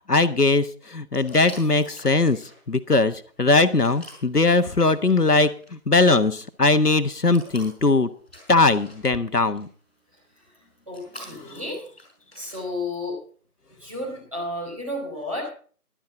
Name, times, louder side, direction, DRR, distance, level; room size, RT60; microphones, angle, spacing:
voice 1, 0.1-2.4 2.7-8.1 8.5-9.7, left 3 dB, 80° left, 11 dB, 1.4 m, -20 dB
Waterbottle squirt into mouth, 1.1-12.8, left 1 dB, 5° right, 3.2 m, -49 dB
voice 2, 10.9-11.8 12.4-13.2 13.8-15.5, left 1 dB, 20° right, -2 dB, 3.8 m, -32 dB
15.5 x 12.0 x 3.9 m, 0.43 s
figure-of-eight pair, 170°, 46 cm